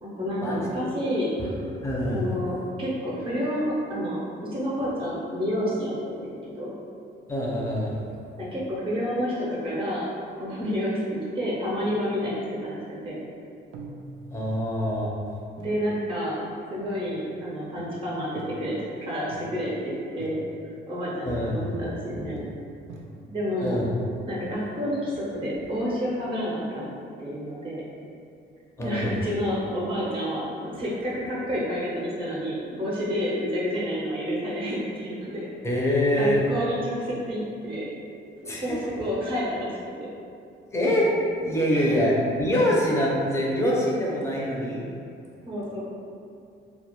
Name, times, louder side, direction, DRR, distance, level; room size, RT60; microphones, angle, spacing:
voice 1, 0.0-1.3 2.1-5.9 6.2-6.7 8.4-10.1 10.4-11.0 11.3-13.2 15.6-16.4 16.7-20.4 20.9-22.4 23.3-23.8 24.3-26.9 27.2-27.8 28.8-35.5 36.1-37.8 38.4-39.7 40.0-40.1 41.7-42.0 45.4-45.8, equal, 25° right, -7 dB, 0.7 m, -29 dB
voice 2, 1.8-2.2 7.3-7.9 14.3-15.1 21.2-21.7 22.1-22.2 23.6-23.9 28.8-29.2 35.6-36.4 38.5-38.7 40.7-41.1 41.4-44.8, equal, 15° left, -5 dB, 0.6 m, -24 dB
sound 1, 11.8-12.6 13.7-14.9 15.6-15.9 16.9-17.4 17.7-18.9 19.3-19.9 20.2-20.7 21.5-22.1 22.3-23.5, right 2 dB, 75° right, 0.4 m, -45 dB
2.3 x 2.0 x 2.9 m, 2.5 s
cardioid pair, 90°, 20 cm